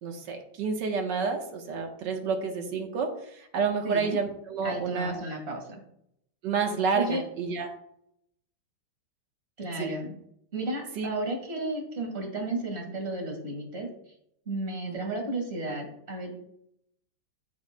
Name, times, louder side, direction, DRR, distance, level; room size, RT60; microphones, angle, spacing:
voice 1, 0.0-5.3 6.4-7.7 9.8-9.9 11.0-11.1 14.9-15.0, right 5 dB, 65° right, 3 dB, 1.8 m, -30 dB
voice 2, 3.8-4.2 4.6-5.8 6.9-7.2 9.6-10.1 10.5-13.9 14.5-16.4, right 2 dB, 30° right, 2 dB, 2.1 m, -33 dB
14.5 x 5.2 x 2.2 m, 0.74 s
omnidirectional pair, 2.2 m